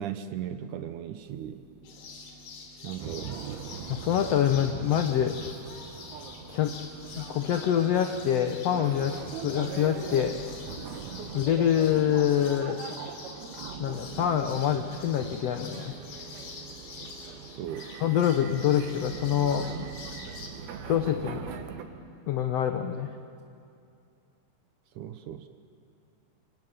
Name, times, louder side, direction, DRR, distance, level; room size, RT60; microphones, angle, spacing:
voice 1, 0.0-1.6 2.8-3.6 17.6-17.9 25.0-25.5, right 10 dB, 70° right, 9 dB, 2.1 m, -37 dB
sound 1, 1.2-14.1 14.5-15.5, right 1 dB, 20° left, 2.4 m, -53 dB
sound 2, 1.8-20.5, left 4 dB, 75° left, 4.6 m, -45 dB
sound 3, 3.0-21.8, right 6 dB, 90° right, 3.4 m, -41 dB
voice 2, 3.9-5.4 6.5-6.7 7.1-10.3 11.3-12.8 13.8-16.0 18.0-19.7 20.8-21.5 22.3-23.1, left 10 dB, 90° left, 7 dB, 1.4 m, -26 dB
26.0 x 25.0 x 9.2 m, 2.5 s
omnidirectional pair, 4.3 m